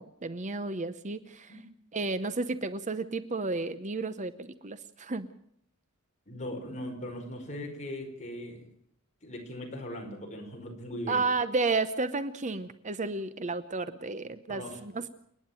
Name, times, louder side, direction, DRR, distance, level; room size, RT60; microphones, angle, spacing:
voice 1, 0.0-1.5 1.9-5.3 11.1-15.1, right 3 dB, 35° right, 12 dB, 0.8 m, -32 dB
voice 2, 6.3-8.7 9.2-11.2 14.5-14.8, left 1 dB, 35° left, 1 dB, 5.0 m, -39 dB
29.0 x 10.0 x 9.0 m, 0.70 s
head